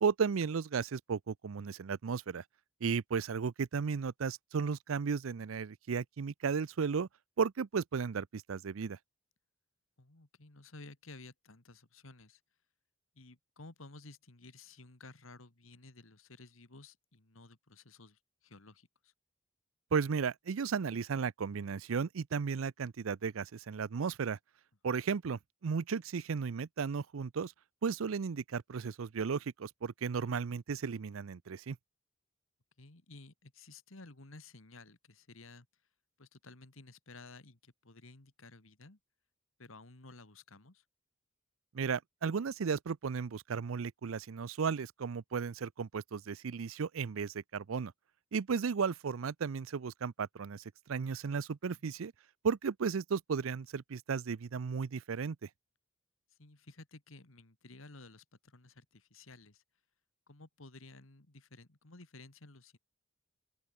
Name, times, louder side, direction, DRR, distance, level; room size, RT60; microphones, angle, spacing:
voice 1, 0.0-2.4 2.8-7.1 7.4-9.0 19.9-24.4 24.8-27.5 27.8-31.8 41.7-47.9 48.3-50.6 50.9-52.1 52.4-55.4, right 6 dB, 85° right, 0.5 m, -34 dB
voice 2, 10.0-12.4 13.2-19.1 24.9-25.0 30.2-30.3 32.8-35.7 36.2-39.0 39.6-40.8 51.7-51.9 56.3-59.6 60.3-62.8, left 3 dB, 80° left, 2.2 m, -54 dB
head